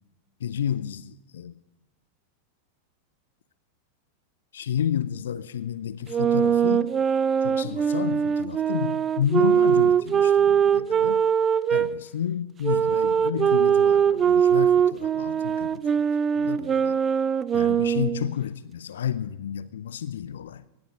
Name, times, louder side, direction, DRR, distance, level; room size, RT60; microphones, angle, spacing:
voice 1, 0.4-1.6 4.5-7.0 7.4-11.3 11.7-15.8 16.3-17.0 17.5-20.6, left 9 dB, 65° left, 0.5 m, -31 dB
sound 1, 6.1-11.9 12.6-18.3, right 8 dB, 25° right, 0.5 m, -22 dB
18.5 x 8.8 x 6.3 m
figure-of-eight pair, 90°, 0 cm